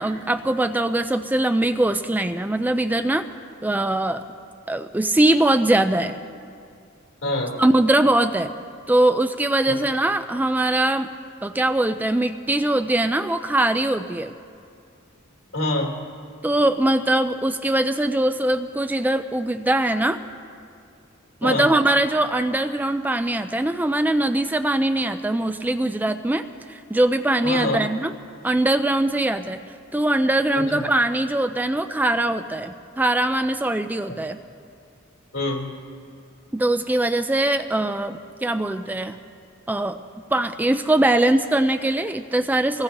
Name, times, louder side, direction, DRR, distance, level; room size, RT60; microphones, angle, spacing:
voice 1, 0.0-3.3 3.6-4.2 4.7-6.2 7.6-8.5 8.9-11.1 11.4-14.3 16.4-20.2 21.4-26.4 26.7-28.1 28.4-29.6 29.9-34.4 36.5-39.2 39.7-40.0 40.3-42.8, right 1 dB, 10° right, 9 dB, 0.3 m, -21 dB
voice 2, 7.2-7.5 9.6-9.8 15.5-15.9 21.4-21.7 27.4-27.8 30.5-30.8 35.3-35.7, left 2 dB, 80° left, -3 dB, 3.5 m, -25 dB
24.5 x 20.0 x 2.9 m, 2.4 s
head